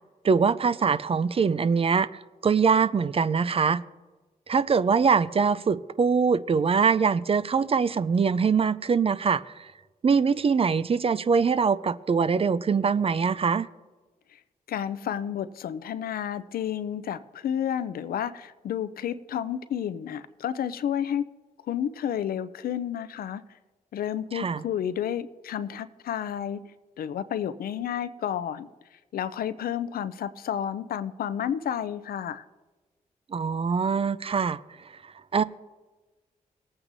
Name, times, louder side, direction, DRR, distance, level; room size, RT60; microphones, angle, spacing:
voice 1, 0.2-2.1 2.4-3.8 4.5-9.7 10.0-13.7 24.3-24.6 33.3-34.6 35.3-35.4, right 5 dB, 40° right, 16 dB, 0.4 m, -23 dB
voice 2, 14.7-21.3 21.7-23.4 23.9-26.7 27.0-28.7 29.1-32.4, left 9 dB, 75° left, 14 dB, 0.5 m, -31 dB
19.0 x 8.8 x 2.7 m, 1.2 s
supercardioid pair, 50°, 15 cm